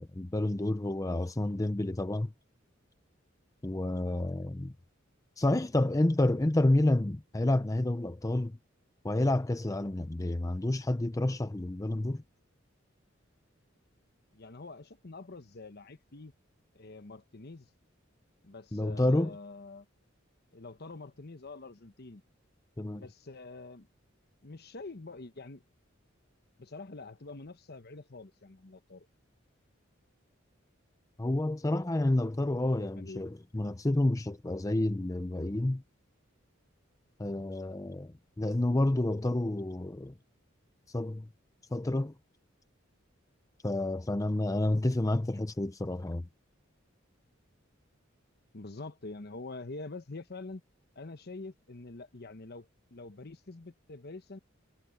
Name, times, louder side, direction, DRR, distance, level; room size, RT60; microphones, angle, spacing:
voice 1, 0.0-2.3 3.6-4.7 5.4-8.6 9.0-12.2 18.7-19.3 22.8-23.0 31.2-35.8 37.2-38.1 38.4-40.1 40.9-41.3 41.7-42.1 43.6-46.2, left 1 dB, 15° left, 0.6 m, -29 dB
voice 2, 14.3-16.3 16.7-17.7 18.4-19.9 20.5-22.2 22.9-23.9 24.4-25.6 26.6-29.1 32.5-33.3 48.5-50.6 50.9-54.4, left 3 dB, 55° left, 1.2 m, -46 dB
head